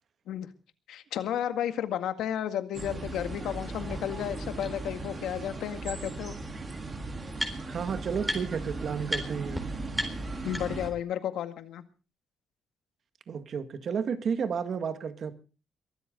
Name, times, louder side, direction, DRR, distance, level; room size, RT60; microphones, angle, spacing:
voice 1, 0.9-6.3 10.4-11.8, left 10 dB, 85° left, 1.9 m, -32 dB
sound 1, 2.7-10.9, right 2 dB, 30° right, 3.5 m, -38 dB
sound 2, 3.9-4.0 4.6-4.7 6.0-6.1 6.3-7.9 8.2-8.7 9.1-9.2 9.5-9.6 9.9-11.0, equal, ahead, 3.9 m, -35 dB
voice 2, 7.7-9.6 13.3-15.3, right 6 dB, 50° right, 1.8 m, -32 dB
23.0 x 13.5 x 3.9 m
cardioid pair, 135°, 0 cm